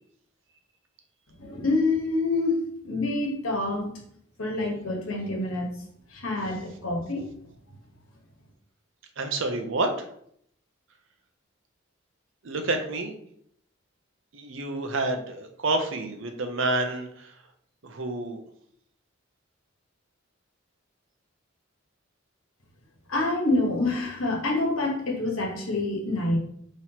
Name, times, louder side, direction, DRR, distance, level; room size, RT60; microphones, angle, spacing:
voice 1, 1.4-2.6 2.8-3.9 4.4-5.7 6.1-7.2 23.1-26.4, left 2 dB, 85° left, 1 dB, 1.2 m, -27 dB
voice 2, 9.2-10.1 12.4-13.2 14.3-17.3 17.8-18.4, right 2 dB, 65° right, 5 dB, 0.7 m, -29 dB
5.6 x 3.1 x 2.9 m, 0.67 s
head